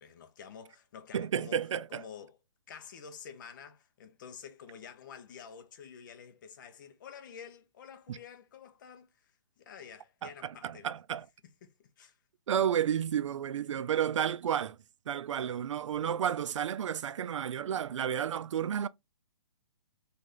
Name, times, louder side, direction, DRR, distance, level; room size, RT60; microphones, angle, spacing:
voice 1, 0.0-2.4 2.7-9.3 9.6-10.9 11.6-12.2, left 7 dB, 40° left, 0.9 m, -49 dB
voice 2, 1.1-2.0 8.1-8.2 10.2-11.3 12.5-14.8 15.1-18.9, right 9 dB, 75° right, 0.4 m, -31 dB
4.1 x 3.4 x 3.8 m
hypercardioid pair, 165°, 16 cm